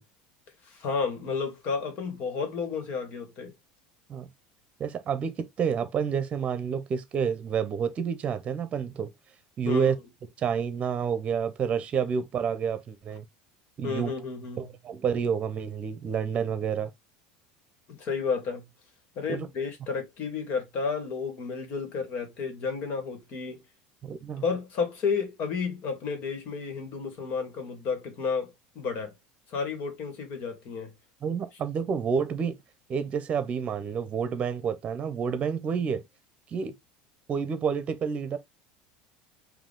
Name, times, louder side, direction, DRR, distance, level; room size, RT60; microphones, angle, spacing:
voice 1, 0.7-3.5 9.7-9.9 13.8-14.6 18.0-18.6 19.2-23.6 24.4-29.1 29.5-30.9, left 5 dB, 50° left, 2.0 m, -32 dB
voice 2, 4.8-9.1 9.6-10.0 10.4-13.2 13.8-14.1 14.6-16.9 19.3-19.5 24.0-24.4 31.2-32.6 32.9-36.0 36.5-36.7 37.3-38.4, right 7 dB, 35° right, 0.9 m, -29 dB
5.0 x 2.8 x 3.7 m
supercardioid pair, 120°, 4 cm